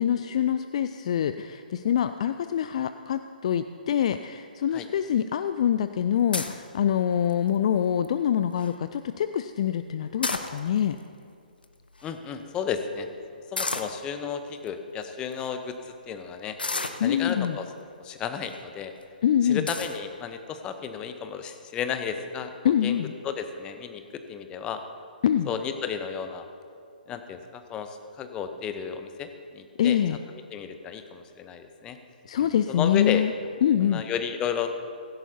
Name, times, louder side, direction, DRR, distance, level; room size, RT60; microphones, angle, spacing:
voice 1, 0.0-11.0 17.0-17.6 19.2-19.7 22.6-23.1 25.2-25.5 29.8-30.2 32.3-33.3 33.6-34.0, left 9 dB, 40° left, 11 dB, 0.3 m, -25 dB
sound 1, 6.3-6.7 7.3-7.6 8.0-8.1 8.4-8.7 10.0-10.9 11.6-11.7 11.9-12.1 13.6-14.0 14.7-14.8 15.3-15.5 16.6-17.5 18.2-18.6 19.0-19.1 19.7-20.0, left 3 dB, 75° left, 0.9 m, -31 dB
voice 2, 12.0-13.1 13.5-16.6 17.0-17.7 18.0-18.9 19.4-23.0 23.2-24.8 25.5-26.5 27.1-30.0 30.5-32.0 32.4-33.2 33.8-34.7, left 7 dB, 15° left, 8 dB, 0.7 m, -33 dB
17.0 x 15.5 x 2.7 m, 2.4 s
figure-of-eight pair, 125°, 5 cm